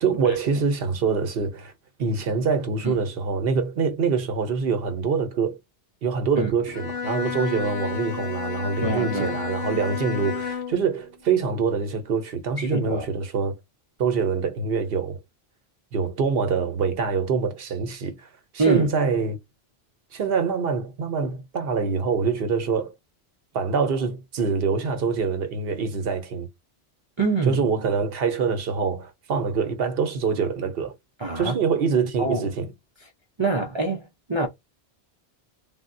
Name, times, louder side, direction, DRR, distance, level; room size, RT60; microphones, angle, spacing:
voice 1, 0.0-1.7 2.0-5.6 6.0-13.6 14.0-15.2 15.9-18.2 18.5-19.4 20.1-22.9 23.5-26.5 27.5-30.9 31.4-32.7, right 5 dB, 65° right, 0.9 m, -25 dB
Bowed string instrument, 6.7-10.9, left 6 dB, 75° left, 0.9 m, -31 dB
voice 2, 8.8-9.4 12.6-13.0 18.6-18.9 27.2-27.6 31.2-31.6 32.2-32.5 33.4-34.5, right 3 dB, 35° right, 0.5 m, -25 dB
3.5 x 2.1 x 2.5 m
omnidirectional pair, 1.1 m